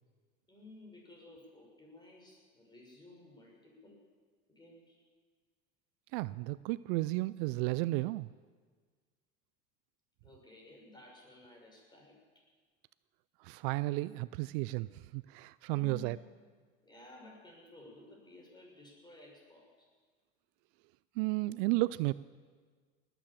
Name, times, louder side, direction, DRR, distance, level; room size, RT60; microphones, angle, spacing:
voice 1, 0.5-4.0 4.5-5.0 10.2-12.2 15.7-16.3 16.8-19.9, left 2 dB, 15° left, -1 dB, 6.6 m, -55 dB
voice 2, 6.1-8.3 13.4-16.2 21.2-22.1, right 20 dB, 65° right, 18 dB, 0.5 m, -33 dB
20.0 x 9.2 x 7.3 m, 1.5 s
hypercardioid pair, 85°, 29 cm